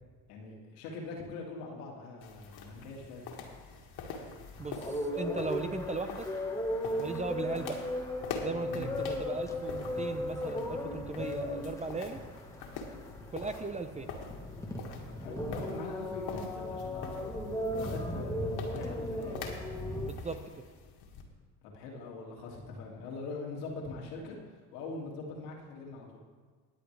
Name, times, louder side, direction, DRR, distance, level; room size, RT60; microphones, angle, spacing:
voice 1, 0.3-3.3 8.7-8.9 15.1-19.5 21.6-24.4 24.7-26.2, left 3 dB, 80° left, -2 dB, 2.6 m, -43 dB
sound 1, 2.2-21.2, left 5 dB, 55° left, 2.2 m, -46 dB
sound 2, 4.5-20.1, left 1 dB, 5° left, 1.6 m, -37 dB
voice 2, 4.6-6.3 7.0-7.8 8.4-12.2 13.3-14.1 20.0-20.4, right 3 dB, 15° right, 8 dB, 0.7 m, -37 dB
20.5 x 7.8 x 3.4 m, 1.5 s
supercardioid pair, 90°, 46 cm